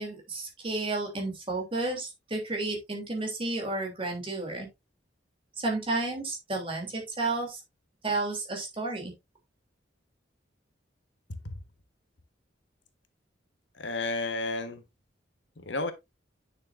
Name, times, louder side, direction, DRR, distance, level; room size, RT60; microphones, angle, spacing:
voice 1, 0.0-4.7 5.6-7.6 8.0-9.1, right 2 dB, 30° right, 3.2 m, -32 dB
voice 2, 11.3-11.6 13.8-14.8 15.6-15.9, left 2 dB, 75° left, 1.4 m, -32 dB
9.1 x 6.9 x 2.6 m
head